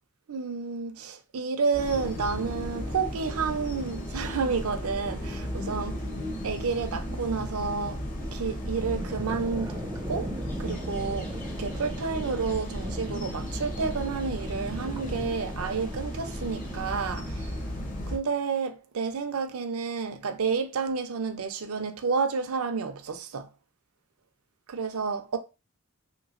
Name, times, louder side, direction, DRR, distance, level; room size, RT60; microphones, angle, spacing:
voice 1, 0.3-6.0 6.4-8.0 8.3-17.5 18.1-23.5 24.7-25.4, right 5 dB, 80° right, 0.5 m, -30 dB
sound 1, 1.7-18.2, equal, 40° left, 0.7 m, -35 dB
sound 2, 8.8-16.1, right 1 dB, 15° right, 0.4 m, -40 dB
3.2 x 3.0 x 2.5 m
head